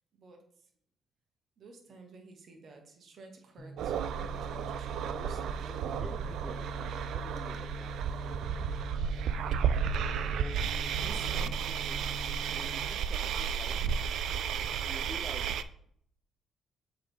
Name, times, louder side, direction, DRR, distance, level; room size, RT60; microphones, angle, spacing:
voice 1, 0.1-0.4 1.6-6.1 7.4-7.6 10.9-11.6 14.1-14.4, right 3 dB, 55° right, 3 dB, 1.2 m, -52 dB
sound 1, 3.6-12.9, equal, 50° left, 1.0 m, -45 dB
sound 2, 3.8-15.6, right 7 dB, 75° right, 0.3 m, -33 dB
voice 2, 5.1-7.9 10.1-12.0 12.5-14.0 14.8-15.6, equal, ahead, 3 dB, 0.6 m, -49 dB
6.8 x 4.0 x 3.6 m, 0.65 s
cardioid pair, 90°, 0 cm